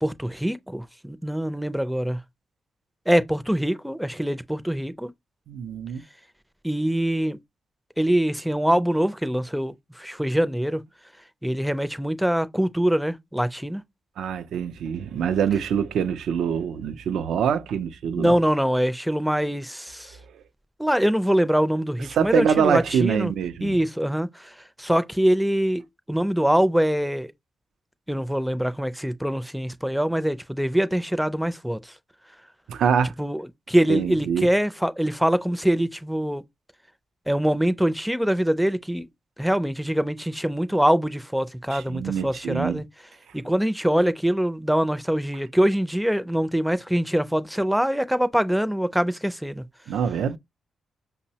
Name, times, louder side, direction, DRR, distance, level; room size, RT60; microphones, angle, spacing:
voice 1, 0.0-2.2 3.1-5.1 6.6-7.4 8.0-10.8 11.4-13.8 18.2-20.2 20.8-23.3 23.6-25.8 26.1-27.3 28.1-31.9 33.2-33.4 33.7-36.4 37.3-39.1 39.4-42.8 43.3-49.6, equal, 5° right, 0.4 m, -24 dB
voice 2, 5.5-6.0 14.2-18.4 20.3-20.4 22.1-23.8 32.7-33.1 33.9-34.5 41.7-42.8 49.9-50.4, right 7 dB, 80° right, 0.4 m, -24 dB
5.3 x 2.0 x 2.8 m
cardioid pair, 60°, 0 cm